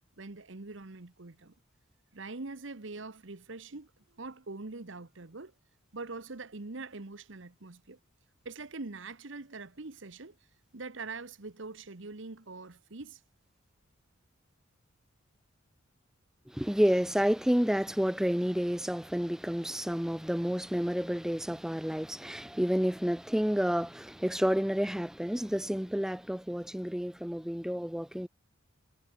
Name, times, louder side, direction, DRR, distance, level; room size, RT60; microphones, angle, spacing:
voice 1, 0.2-1.5 2.1-5.5 5.9-8.0 8.4-10.4 10.7-13.2, right 3 dB, 65° right, 1.2 m, -43 dB
voice 2, 16.5-28.3, equal, ahead, 0.4 m, -30 dB
head